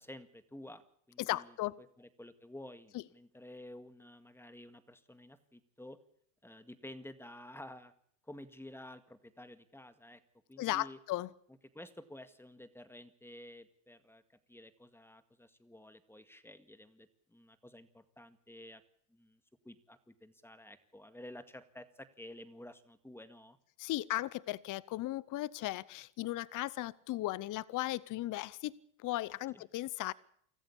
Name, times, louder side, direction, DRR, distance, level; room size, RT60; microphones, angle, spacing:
voice 1, 0.0-6.0 6.4-7.9 8.3-10.2 10.5-11.0 11.7-14.2 14.5-18.8 19.1-19.4 19.6-23.6 29.5-29.6, left 1 dB, 5° left, 11 dB, 2.0 m, -52 dB
voice 2, 1.2-1.8 10.6-11.3 23.8-30.1, left 16 dB, 45° left, 22 dB, 0.8 m, -36 dB
25.0 x 14.0 x 8.7 m, 0.67 s
supercardioid pair, 90°, 42 cm